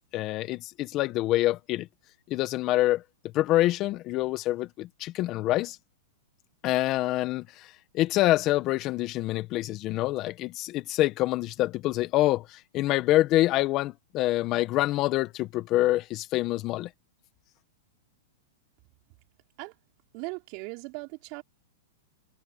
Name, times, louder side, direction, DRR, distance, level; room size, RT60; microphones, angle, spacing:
voice 1, 0.1-1.9 2.3-3.0 3.3-5.8 6.6-16.9, left 16 dB, 35° left, 1.4 m, -26 dB
voice 2, 20.1-21.4, right 30 dB, 45° right, 4.9 m, -38 dB
hypercardioid pair, 135°, 0 cm